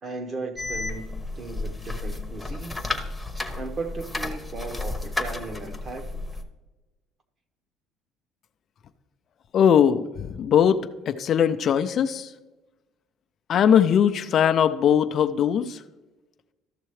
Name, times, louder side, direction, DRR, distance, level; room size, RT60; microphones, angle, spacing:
voice 1, 0.0-2.9 3.6-6.2, right 3 dB, 35° right, 1.1 m, -36 dB
sound 1, 0.6-6.4, left 2 dB, 5° left, 0.9 m, -32 dB
voice 2, 9.5-12.3 13.5-15.8, left 8 dB, 50° left, 0.5 m, -20 dB
13.0 x 6.7 x 3.2 m
cardioid pair, 125°, 0 cm